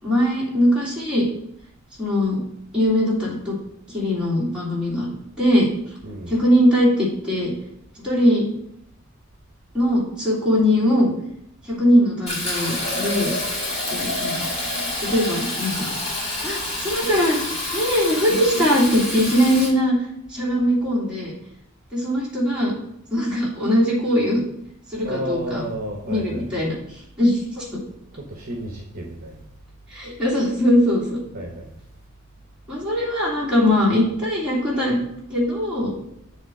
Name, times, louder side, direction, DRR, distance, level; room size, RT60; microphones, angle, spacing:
voice 1, 0.0-1.2 2.0-2.4 2.7-3.6 3.9-5.1 5.4-5.7 6.3-7.5 8.0-8.5 9.7-11.1 11.7-13.3 13.9-14.5 15.0-15.9 16.4-17.4 17.7-20.0 20.3-21.3 21.9-22.7 23.1-24.4 24.9-25.6 26.0-26.7 27.2-27.8 29.9-31.2 32.7-35.0 35.3-35.9, equal, 5° right, 2.9 m, -20 dB
voice 2, 6.0-6.4 25.0-26.7 28.2-29.4 31.3-31.7, right 1 dB, 45° right, 0.9 m, -32 dB
Fill (with liquid), 12.3-19.7, left 1 dB, 30° left, 2.1 m, -28 dB
8.0 x 3.2 x 6.2 m
head